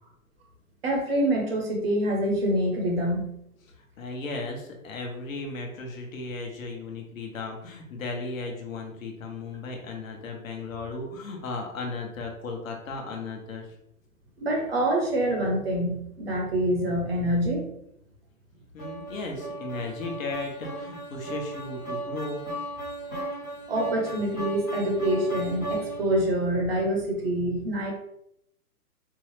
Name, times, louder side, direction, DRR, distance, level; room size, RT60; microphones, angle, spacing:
voice 1, 0.8-3.2 14.4-17.7 23.7-27.9, right 1 dB, 40° right, 0 dB, 0.8 m, -26 dB
voice 2, 4.0-13.7 18.7-22.4, left 3 dB, 60° left, 2 dB, 1.0 m, -35 dB
sound 1, 18.8-26.2, right 2 dB, 10° left, 0.5 m, -36 dB
4.6 x 2.1 x 3.2 m, 0.76 s
hypercardioid pair, 165°, 46 cm